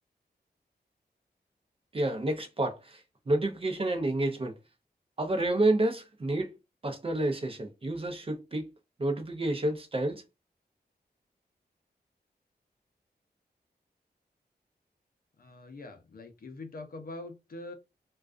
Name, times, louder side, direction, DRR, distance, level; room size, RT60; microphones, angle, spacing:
voice 1, 1.9-4.5 5.2-6.5 6.8-8.7 9.0-10.2, right 1 dB, 35° right, 0.6 m, -29 dB
voice 2, 15.4-17.7, left 2 dB, 60° left, 0.6 m, -43 dB
2.3 x 2.3 x 2.4 m
wide cardioid pair, 80°, 17 cm